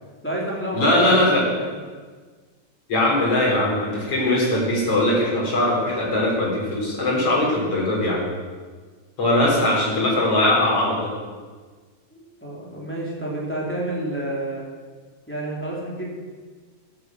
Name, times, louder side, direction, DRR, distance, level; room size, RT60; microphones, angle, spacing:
voice 1, 0.2-1.7 12.1-14.6 15.3-16.1, right 1 dB, 5° left, -5 dB, 3.2 m, -29 dB
voice 2, 0.7-1.5 2.9-8.2 9.2-11.1, left 1 dB, 45° left, -3 dB, 5.0 m, -20 dB
12.5 x 10.0 x 7.9 m, 1.5 s
omnidirectional pair, 3.6 m